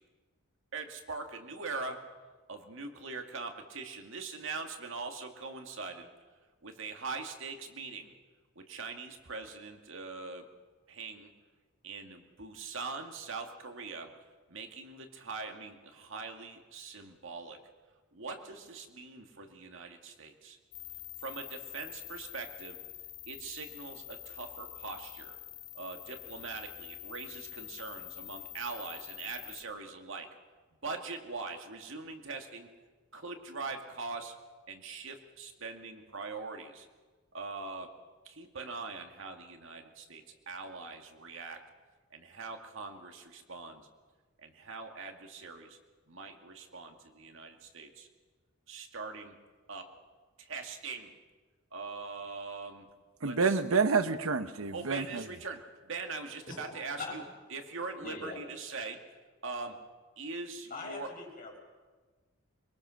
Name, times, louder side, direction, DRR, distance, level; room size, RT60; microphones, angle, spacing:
voice 1, 0.7-2.0 2.5-6.1 6.6-8.2 8.6-10.5 10.9-11.3 11.8-14.1 14.5-17.6 18.1-20.6 21.2-22.8 23.3-25.4 25.7-30.3 30.8-32.7 33.1-34.3 34.7-36.9 37.3-37.9 38.3-41.6 42.1-43.9 44.4-45.8 46.1-48.1 48.7-49.4 49.7-49.9 50.4-51.1 51.7-52.9 53.2-53.6 54.7-57.2 57.5-59.0 59.4-59.8 60.2-61.1, right 4 dB, 65° right, 2.2 m, -42 dB
sound 1, 20.7-29.6, left 13 dB, 70° left, 1.9 m, -46 dB
voice 2, 53.2-55.2, right 4 dB, 80° right, 1.0 m, -28 dB
voice 3, 56.4-57.2 58.0-58.4 60.7-61.6, left 3 dB, 40° left, 6.3 m, -42 dB
23.5 x 23.0 x 6.4 m
head